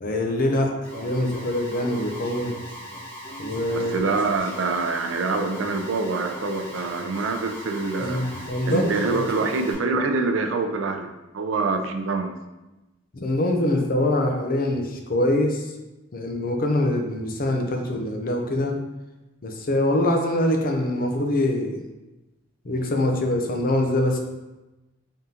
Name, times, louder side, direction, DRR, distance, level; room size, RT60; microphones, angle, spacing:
voice 1, 0.0-2.6 3.4-4.1 8.0-9.3 13.1-15.7 16.1-18.8 19.4-21.8 22.6-24.2, left 1 dB, 45° left, 3 dB, 0.5 m, -24 dB
Alarm, 0.8-9.7, equal, 80° left, 1.4 m, -39 dB
voice 2, 3.7-8.2 8.7-12.3, right 3 dB, 90° right, 5 dB, 0.4 m, -25 dB
3.7 x 3.6 x 2.8 m, 1.0 s
head